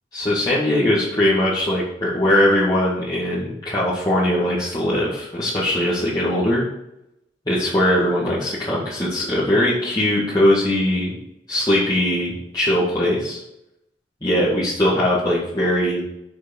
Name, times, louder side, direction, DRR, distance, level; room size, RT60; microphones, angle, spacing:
voice 1, 0.1-6.7 7.5-11.1 11.5-13.4 14.2-16.0, left 1 dB, 25° left, -9 dB, 2.2 m, -20 dB
7.3 x 6.4 x 7.2 m, 0.85 s
head